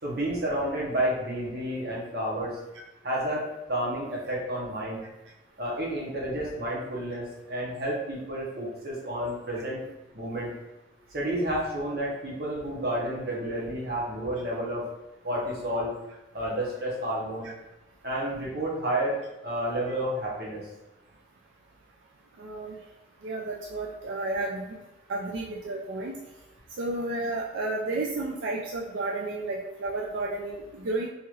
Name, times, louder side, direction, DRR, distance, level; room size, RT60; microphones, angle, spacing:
voice 1, 0.0-2.6 3.0-3.4 3.7-5.0 5.6-9.8 10.1-10.5 11.1-14.9 15.2-15.9 16.3-17.5 18.0-20.7, right 1 dB, 55° right, -4 dB, 0.9 m, -30 dB
voice 2, 22.4-22.8 23.2-24.7 25.1-26.2 26.8-31.1, right 2 dB, 85° right, -2 dB, 0.4 m, -32 dB
3.0 x 2.8 x 2.4 m, 1.0 s
head